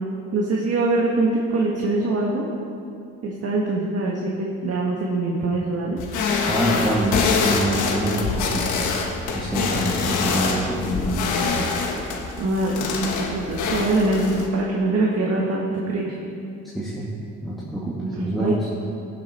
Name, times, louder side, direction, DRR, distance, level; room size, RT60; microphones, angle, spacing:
voice 1, 0.3-2.4 3.2-6.0 12.4-16.1 18.0-18.6, right 2 dB, 55° right, -2 dB, 1.5 m, -23 dB
sound 1, 6.0-14.5, left 4 dB, 80° left, 1.4 m, -25 dB
voice 2, 6.5-8.8 9.3-11.1 16.7-17.1 17.4-18.7, equal, ahead, -7 dB, 2.0 m, -25 dB
16.0 x 8.0 x 4.3 m, 2.6 s
cardioid pair, 90°, 30 cm